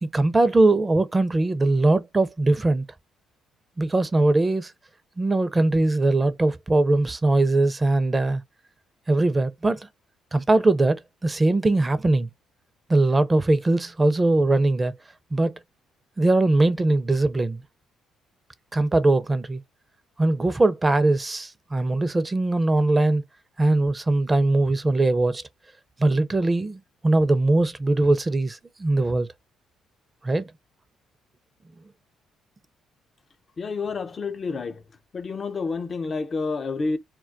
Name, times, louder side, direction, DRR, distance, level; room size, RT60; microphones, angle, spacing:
voice 1, 0.0-2.8 3.8-4.7 5.2-8.4 9.1-9.9 10.3-12.3 12.9-14.9 15.3-15.6 16.2-17.6 18.7-19.6 20.2-23.2 23.6-25.4 26.0-29.3 30.2-30.5, right 2 dB, 25° right, 0.4 m, -21 dB
voice 2, 33.6-34.7 35.1-37.0, left 4 dB, 40° left, 0.4 m, -29 dB
2.2 x 2.2 x 3.7 m
hypercardioid pair, 50°, 0 cm